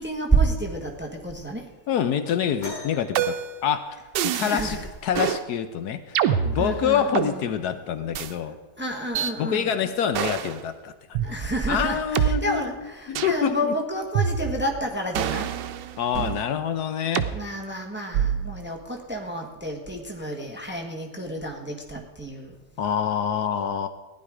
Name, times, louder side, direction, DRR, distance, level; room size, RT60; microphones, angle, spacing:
voice 1, 0.0-1.6 4.4-4.8 6.4-7.4 8.8-9.7 11.2-15.5 17.3-22.5, right 2 dB, 5° right, 2 dB, 1.0 m, -29 dB
voice 2, 1.9-3.3 3.6-4.8 5.0-8.6 9.4-11.2 11.7-12.7 13.1-13.8 16.0-17.3 22.8-23.9, left 8 dB, 70° left, 9 dB, 1.2 m, -26 dB
sound 1, 2.6-4.5 6.2-6.3 7.1-7.3 8.2-8.3, left 1 dB, 45° left, 5.1 m, -42 dB
sound 2, 3.2-3.6 4.2-4.7 5.1-5.4 6.2-7.3 8.1-8.3 9.2-9.3 10.1-10.6 11.2-11.3 12.2-12.3 13.2-13.4 14.2-14.7 15.2-16.4 17.2-17.3 18.1-18.5, right 9 dB, 90° right, 1.3 m, -26 dB
15.5 x 10.5 x 4.9 m, 1.2 s
omnidirectional pair, 1.8 m